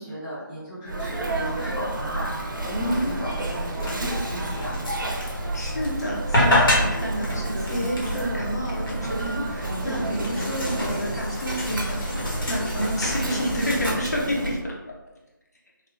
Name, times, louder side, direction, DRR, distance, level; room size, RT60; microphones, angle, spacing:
voice 1, 0.0-4.8, equal, 10° left, -16 dB, 0.5 m, -34 dB
Sneeze, 0.9-14.6, right 2 dB, 70° right, 0.6 m, -31 dB
sound 1, 2.8-13.9, left 1 dB, 75° left, 1.0 m, -29 dB
voice 2, 2.8-3.2 5.3-14.7, equal, 50° left, -3 dB, 0.6 m, -30 dB
3.0 x 2.3 x 2.3 m, 1.0 s
figure-of-eight pair, 175°, 11 cm